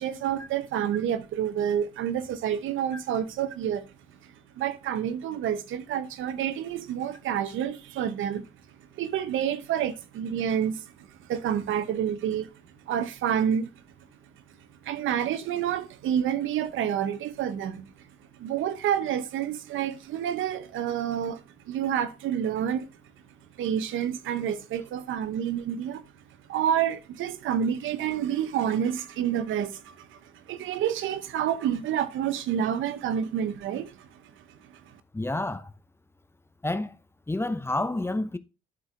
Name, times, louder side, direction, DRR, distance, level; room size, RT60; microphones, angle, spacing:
voice 1, 0.0-3.9 4.2-4.3 4.6-8.5 8.9-12.5 12.8-13.7 14.8-17.9 18.4-22.9 23.6-26.0 26.5-34.2 34.5-35.0, right 9 dB, 80° right, 0.9 m, -29 dB
voice 2, 35.1-35.7 36.6-37.0 37.3-38.4, left 2 dB, 10° left, 0.7 m, -29 dB
11.5 x 4.5 x 3.3 m
cardioid pair, 90°, 20 cm